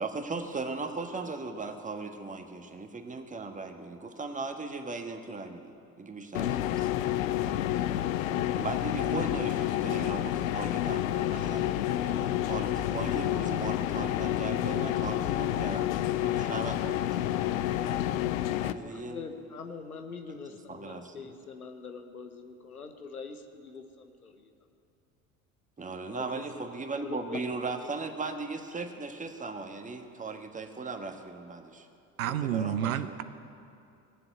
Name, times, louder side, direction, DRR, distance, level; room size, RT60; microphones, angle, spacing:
voice 1, 0.0-5.7 6.0-6.9 8.3-17.3 18.6-19.2 20.7-21.2 25.8-31.9 32.2-33.2, right 3 dB, 20° right, 5 dB, 1.5 m, -38 dB
sound 1, 6.3-18.7, left 12 dB, 70° left, 0.6 m, -29 dB
voice 2, 18.7-24.5 26.1-28.1, left 4 dB, 90° left, 6 dB, 1.1 m, -44 dB
voice 3, 32.2-33.2, right 10 dB, 75° right, 12 dB, 0.8 m, -30 dB
19.0 x 7.7 x 9.2 m, 2.6 s
figure-of-eight pair, 65°, 43 cm